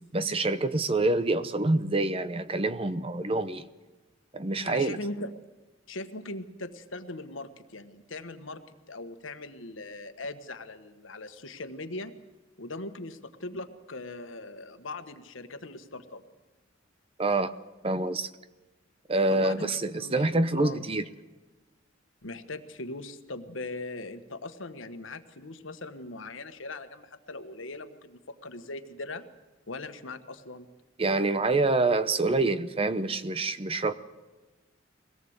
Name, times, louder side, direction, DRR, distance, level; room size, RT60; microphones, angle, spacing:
voice 1, 0.1-3.7 4.3-5.0 17.2-17.5 17.8-18.3 19.1-21.0 31.0-33.9, right 2 dB, 30° right, 13 dB, 0.8 m, -26 dB
voice 2, 4.6-5.3 5.9-8.6 8.9-12.1 12.6-16.2 19.3-20.8 22.2-29.3 29.7-30.7, left 2 dB, 75° left, 9 dB, 1.5 m, -40 dB
23.0 x 18.0 x 8.1 m, 1.2 s
head